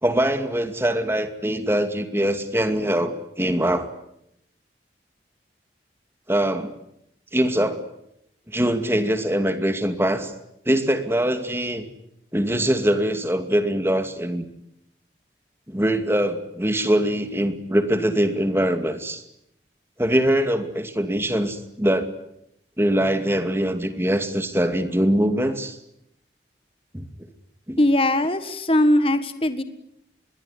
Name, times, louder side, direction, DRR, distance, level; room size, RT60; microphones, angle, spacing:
voice 1, 0.0-3.9 6.3-6.7 7.3-7.8 8.5-10.3 10.7-11.9 12.3-14.5 15.7-19.2 20.0-22.1 22.8-25.8 26.9-27.1 27.7-27.8, right 1 dB, 15° right, 8 dB, 2.4 m, -23 dB
voice 2, 27.8-29.6, left 1 dB, 30° left, 11 dB, 1.5 m, -20 dB
26.0 x 22.0 x 9.8 m, 0.77 s
head